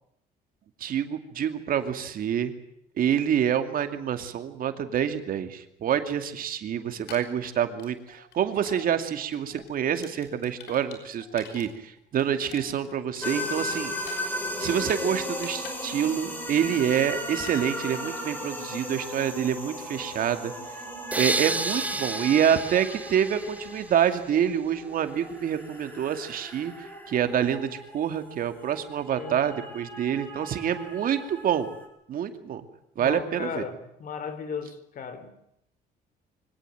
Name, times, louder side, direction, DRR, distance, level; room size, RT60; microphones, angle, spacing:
voice 1, 0.8-2.5 3.0-13.9 14.6-20.5 21.2-26.7 27.1-31.7 32.1-32.6 33.0-33.6, right 9 dB, 55° right, 2.5 m, -27 dB
sound 1, 6.9-8.4 8.7-8.9 9.2-11.7 12.0-15.0 15.3-16.3 16.6-16.9 17.4-17.6, left 7 dB, 85° left, 5.4 m, -46 dB
sound 2, 13.2-31.8, left 1 dB, 10° left, 6.8 m, -37 dB
sound 3, 21.1-24.1, right 2 dB, 10° right, 0.9 m, -31 dB
voice 2, 33.0-35.3, left 6 dB, 55° left, 3.4 m, -36 dB
24.0 x 17.5 x 9.1 m
cardioid pair, 110°, 17 cm